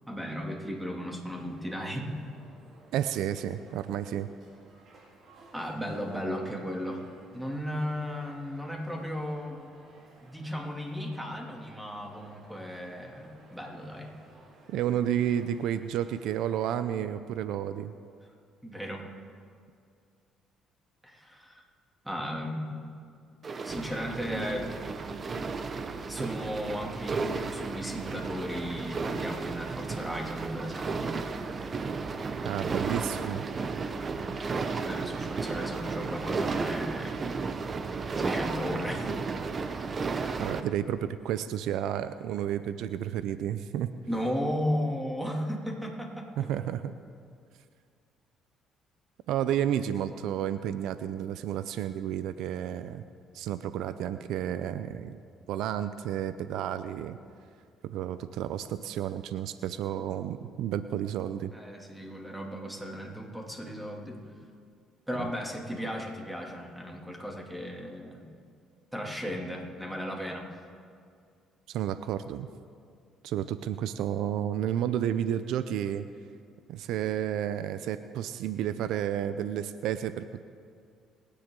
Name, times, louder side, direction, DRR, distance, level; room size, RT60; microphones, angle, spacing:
voice 1, 0.1-2.1 5.5-7.0 7.3-9.6 10.2-14.1 18.6-19.1 21.0-21.6 22.0-22.7 23.6-24.8 26.1-31.2 34.8-37.2 38.2-39.1 44.1-46.5 61.5-64.3 65.1-68.2 68.9-70.4, equal, 5° right, 0 dB, 2.7 m, -35 dB
sound 1, 1.3-16.8, right 2 dB, 55° right, 3.5 m, -57 dB
voice 2, 2.9-4.3 14.7-17.9 32.4-33.4 40.4-43.9 46.4-46.9 49.3-53.0 53.3-55.2 55.5-57.2 57.8-61.5 65.2-65.3 71.7-72.5 73.2-76.1 76.7-80.4, right 10 dB, 80° right, 12 dB, 0.5 m, -31 dB
sound 2, 23.4-40.6, right 4 dB, 40° right, 0.9 m, -33 dB
28.5 x 10.0 x 3.8 m, 2.2 s
supercardioid pair, 80°, 0 cm